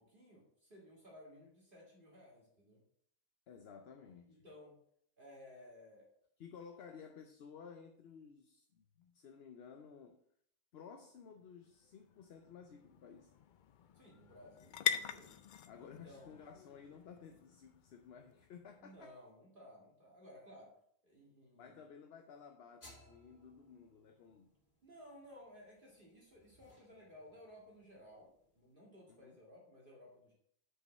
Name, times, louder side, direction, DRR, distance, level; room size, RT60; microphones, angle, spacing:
voice 1, 0.0-2.8 4.3-4.7 5.2-6.1 13.9-15.4 15.8-16.3 18.8-20.7 21.0-21.8 24.8-30.3, left 1 dB, 40° right, 2.0 m, -58 dB
voice 2, 3.5-4.4 6.4-10.2 10.7-13.3 15.7-19.2 21.5-24.5 29.1-29.4, left 6 dB, 55° left, 0.8 m, -55 dB
sound 1, 11.2-19.1, left 8 dB, 85° left, 0.4 m, -44 dB
sound 2, 22.8-28.7, left 1 dB, 40° left, 2.5 m, -65 dB
6.2 x 5.4 x 6.3 m
omnidirectional pair, 1.4 m